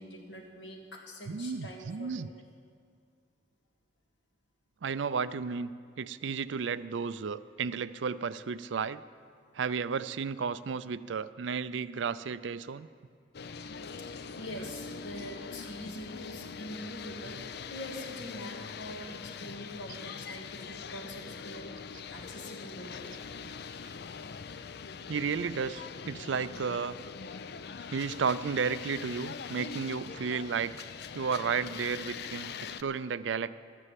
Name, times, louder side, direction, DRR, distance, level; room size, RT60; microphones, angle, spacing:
voice 1, 0.0-2.2 14.0-23.0, equal, 75° left, 1 dB, 2.1 m, -44 dB
voice 2, 1.3-2.3 4.8-5.7 6.0-9.0 9.5-12.9 14.5-14.7 23.4-23.6 25.1-27.0 27.9-30.7 31.1-32.6 32.8-33.5, right 5 dB, 80° right, 15 dB, 0.4 m, -33 dB
sound 1, 13.3-32.8, left 6 dB, 60° left, 0.5 m, -42 dB
13.0 x 9.7 x 7.6 m, 2.2 s
head